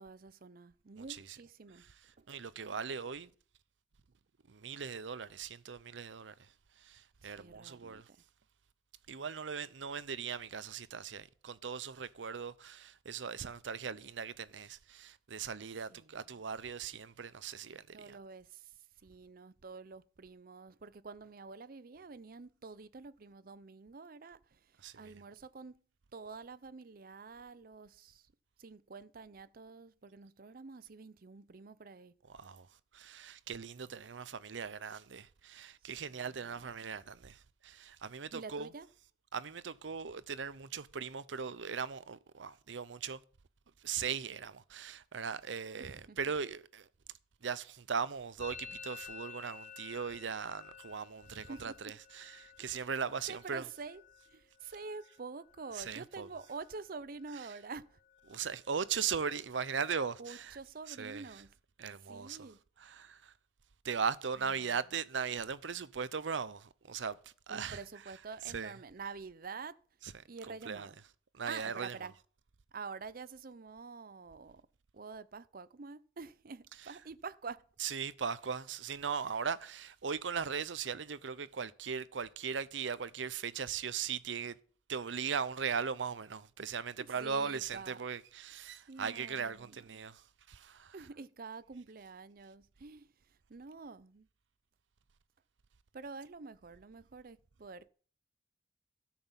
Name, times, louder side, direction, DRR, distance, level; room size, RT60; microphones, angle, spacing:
voice 1, 0.0-1.8 2.2-2.3 7.2-8.0 15.9-16.2 17.9-18.7 19.0-25.8 26.1-28.3 28.6-32.1 36.1-36.7 38.3-38.9 45.8-46.2 51.3-51.9 52.6-52.9 53.3-58.0 60.2-61.5 62.1-62.6 64.4-64.8 67.5-69.8 70.2-71.0 71.5-72.1 72.7-74.7 74.9-77.6 87.0-88.0 88.6-90.0 90.9-93.1 93.5-94.3 95.9-97.9, right 4 dB, 50° right, 0.6 m, -48 dB
voice 2, 2.3-3.3 4.5-6.5 6.8-8.1 9.1-18.2 24.8-25.0 32.3-32.7 32.9-38.7 39.3-43.2 43.8-46.9 47.4-53.7 55.7-56.3 58.3-60.6 60.9-61.4 61.8-62.5 62.8-63.3 63.8-67.2 67.5-67.8 68.5-68.7 70.0-70.2 70.6-70.9 71.3-72.0 77.8-84.5 84.9-90.9, right 6 dB, 90° right, 0.7 m, -39 dB
Musical instrument, 48.4-56.0 56.3-56.9 57.1-57.7 58.0-60.0, left 6 dB, 40° left, 0.8 m, -54 dB
13.0 x 6.1 x 7.2 m
head